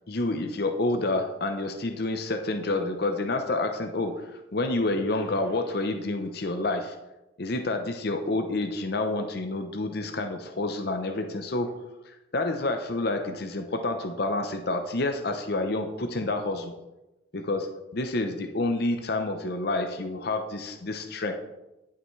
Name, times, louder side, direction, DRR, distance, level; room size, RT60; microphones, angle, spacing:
voice 1, 0.1-7.0 7.4-11.8 12.1-16.7 17.3-21.3, left 2 dB, 55° left, 6 dB, 0.7 m, -29 dB
14.5 x 5.8 x 3.2 m, 0.98 s
head